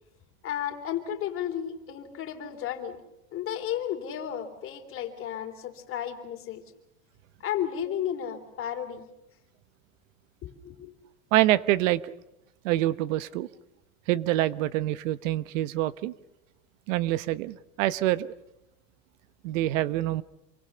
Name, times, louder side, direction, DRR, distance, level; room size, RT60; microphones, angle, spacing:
voice 1, 0.4-3.0 3.3-6.6 7.4-9.0 10.4-10.9, left 10 dB, 30° left, 6 dB, 3.5 m, -33 dB
voice 2, 11.3-12.1 12.6-13.5 14.1-16.1 16.9-18.3 19.4-20.2, right 15 dB, 70° right, 16 dB, 1.1 m, -26 dB
27.5 x 24.0 x 6.8 m, 0.86 s
supercardioid pair, 155°, 40 cm